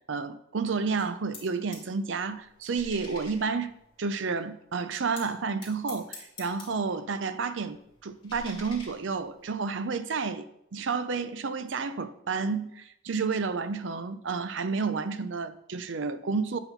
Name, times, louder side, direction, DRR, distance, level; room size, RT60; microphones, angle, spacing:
voice 1, 0.1-3.7 4.0-16.6, right 4 dB, 60° right, 0.5 m, -31 dB
sound 1, 1.0-1.9 2.2-4.4 5.2-7.0 7.3-9.5, left 3 dB, 25° left, 2.2 m, -48 dB
8.1 x 4.2 x 5.5 m
head